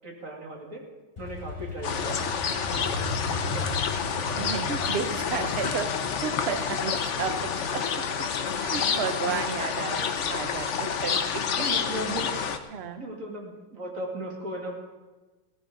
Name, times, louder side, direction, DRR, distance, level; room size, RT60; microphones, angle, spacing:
voice 1, 0.0-0.8 1.2-2.2 2.7-3.7 11.6-12.3 13.0-14.8, right 1 dB, 40° right, -1 dB, 2.7 m, -37 dB
Motorcycle, 1.2-8.8, left 2 dB, 25° left, 5.5 m, -37 dB
sound 1, 1.8-12.6, left 6 dB, 65° left, 0.7 m, -29 dB
voice 2, 3.1-3.4 4.4-6.0 6.2-8.3 8.6-11.7 12.7-13.0, right 6 dB, 85° right, 10 dB, 0.5 m, -33 dB
17.0 x 15.5 x 4.0 m, 1.3 s
omnidirectional pair, 2.3 m